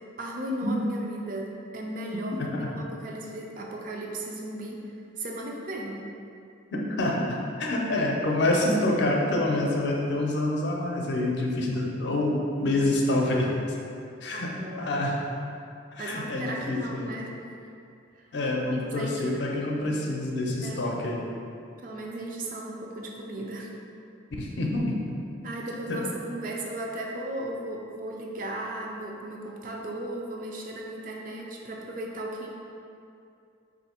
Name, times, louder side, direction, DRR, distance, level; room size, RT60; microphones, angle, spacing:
voice 1, 0.2-6.0 14.3-14.9 16.0-17.3 18.4-19.4 20.6-21.0 21.8-23.7 25.4-32.5, right 1 dB, 45° right, -1 dB, 0.4 m, -36 dB
voice 2, 6.7-13.5 14.2-14.5 14.8-15.1 16.0-17.1 18.3-21.2 24.4-24.9 25.9-26.0, left 1 dB, 65° left, -2 dB, 0.5 m, -27 dB
3.2 x 2.6 x 4.2 m, 2.5 s
head